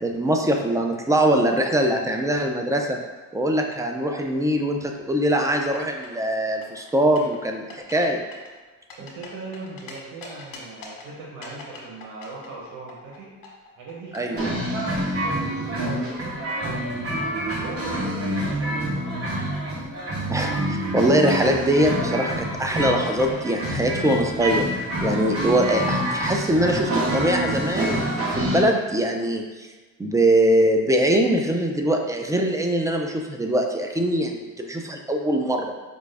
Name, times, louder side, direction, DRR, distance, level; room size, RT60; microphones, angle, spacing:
voice 1, 0.0-3.0 3.3-8.2 14.1-14.6 20.3-24.7 25.0-29.7 30.0-35.7, right 1 dB, 10° right, 2 dB, 0.4 m, -22 dB
sound 1, 5.5-6.3 6.6-7.4 7.7-8.1 8.3-9.9 10.2-11.1 11.4-14.4, left 5 dB, 70° left, 1.1 m, -42 dB
voice 2, 9.0-13.3 13.8-16.9 17.6-19.5, right 3 dB, 75° right, -4 dB, 1.0 m, -39 dB
sound 2, 14.4-28.6, right 1 dB, 40° right, 1.0 m, -27 dB
5.0 x 2.4 x 3.3 m, 1.3 s
cardioid pair, 95°, 34 cm